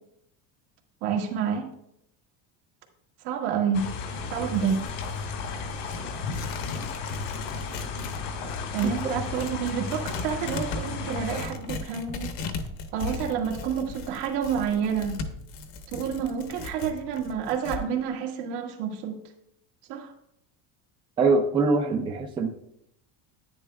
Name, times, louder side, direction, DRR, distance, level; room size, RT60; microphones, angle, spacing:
voice 1, 1.0-1.7 3.2-3.8 4.3-4.8 8.7-12.3 12.9-15.2 15.9-19.2 19.9-20.1, right 7 dB, 90° right, 1 dB, 1.9 m, -29 dB
sound 1, 3.7-11.5, left 4 dB, 80° left, 2.3 m, -34 dB
Tearing, 4.5-8.2 8.5-17.8, left 4 dB, 50° left, 1.0 m, -38 dB
voice 2, 21.2-22.5, right 3 dB, 15° right, 4 dB, 0.3 m, -23 dB
10.5 x 9.4 x 2.3 m, 0.76 s
cardioid pair, 175°, 44 cm